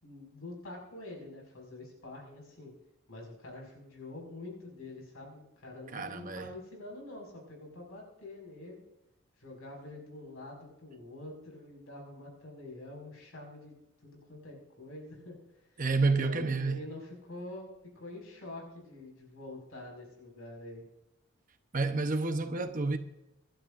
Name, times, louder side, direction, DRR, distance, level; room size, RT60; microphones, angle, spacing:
voice 1, 0.0-2.7 3.1-8.8 9.4-13.7 14.0-15.7 16.2-17.7 17.9-20.8, left 2 dB, 75° left, 5.5 m, -46 dB
voice 2, 5.9-6.5 15.8-16.8 21.7-23.0, right 3 dB, 40° right, 0.8 m, -29 dB
26.0 x 11.5 x 2.6 m
head